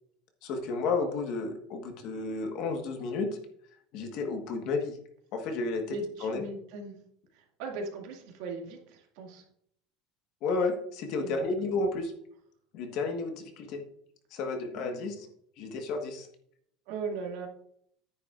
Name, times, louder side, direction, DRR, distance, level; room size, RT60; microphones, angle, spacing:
voice 1, 0.4-3.3 3.9-5.0 5.3-6.4 10.4-12.1 12.7-13.8 14.3-15.3 15.6-16.3, left 3 dB, 45° left, 4 dB, 1.4 m, -32 dB
voice 2, 5.9-6.9 7.3-9.4 11.2-11.3 14.7-15.2 16.9-17.5, right 3 dB, 65° right, 1 dB, 2.2 m, -38 dB
10.5 x 9.6 x 2.5 m, 0.67 s
cardioid pair, 170°, 0 cm